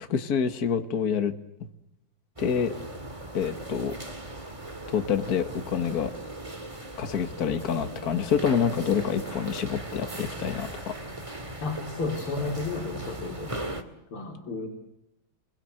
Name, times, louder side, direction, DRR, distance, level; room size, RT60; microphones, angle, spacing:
voice 1, 0.0-1.3 2.4-2.7 3.3-3.9 4.9-6.1 7.0-10.9, left 7 dB, 45° left, 9 dB, 2.0 m, -27 dB
sound 1, 2.4-13.8, right 1 dB, 15° right, 2.1 m, -38 dB
voice 2, 11.6-13.6 14.1-14.7, left 3 dB, 90° left, 2 dB, 4.0 m, -32 dB
30.0 x 22.5 x 7.9 m, 0.82 s
omnidirectional pair, 2.3 m